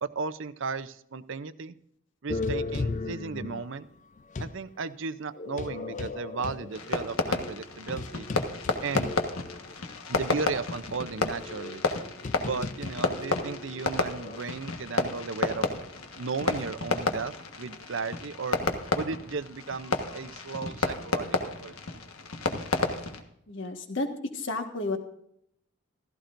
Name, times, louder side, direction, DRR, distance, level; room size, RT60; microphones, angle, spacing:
voice 1, 0.0-1.7 2.2-3.9 4.4-8.3 8.8-9.1 10.1-11.8 12.4-15.7 16.2-18.6 18.9-21.7, right 4 dB, 60° right, 14 dB, 0.6 m, -35 dB
sound 1, 2.3-4.6 5.3-9.7 10.1-10.2 10.9-14.4, left 3 dB, 35° left, 0.4 m, -37 dB
Fireworks, 6.7-23.2, left 3 dB, 80° left, 1.4 m, -31 dB
voice 2, 23.5-24.1 24.3-25.0, left 2 dB, 60° left, 5 dB, 1.6 m, -31 dB
15.5 x 14.0 x 2.6 m, 0.72 s
head